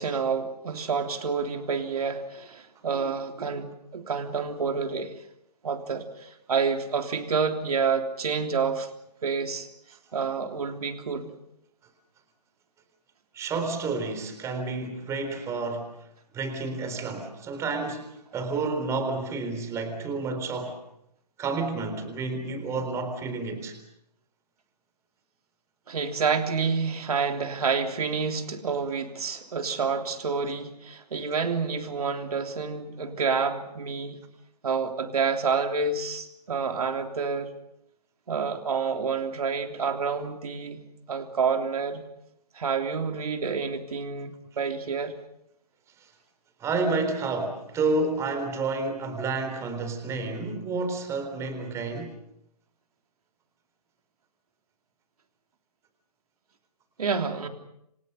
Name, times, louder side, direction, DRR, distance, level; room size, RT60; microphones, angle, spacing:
voice 1, 0.0-5.1 5.6-8.9 9.2-9.7 10.1-11.3 25.9-34.2 34.6-37.5 38.3-40.8 41.1-42.0 42.5-45.1 57.0-57.5, right 5 dB, 65° right, 5 dB, 3.4 m, -28 dB
voice 2, 13.3-16.0 16.3-20.8 21.4-23.8 46.6-52.2, right 3 dB, 15° right, 7 dB, 3.9 m, -30 dB
28.5 x 26.0 x 5.7 m, 0.76 s
figure-of-eight pair, 140°, 21 cm